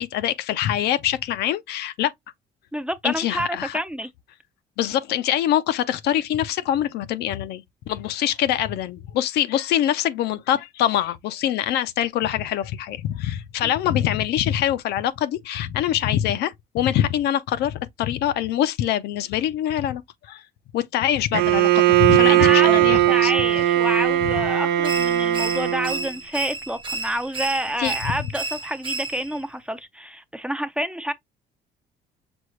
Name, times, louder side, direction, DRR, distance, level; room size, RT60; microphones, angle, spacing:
voice 1, 0.0-2.1 3.0-3.7 4.8-20.0 20.3-20.4 20.7-23.3 27.8-27.9, left 11 dB, 75° left, 0.5 m, -24 dB
voice 2, 2.7-4.1 13.6-13.7 22.2-31.1, right 1 dB, 5° right, 0.4 m, -28 dB
Bowed string instrument, 21.3-26.1, right 14 dB, 75° right, 0.5 m, -19 dB
sound 1, 24.8-29.5, right 3 dB, 30° right, 1.0 m, -32 dB
6.1 x 2.3 x 3.1 m
cardioid pair, 110°, 17 cm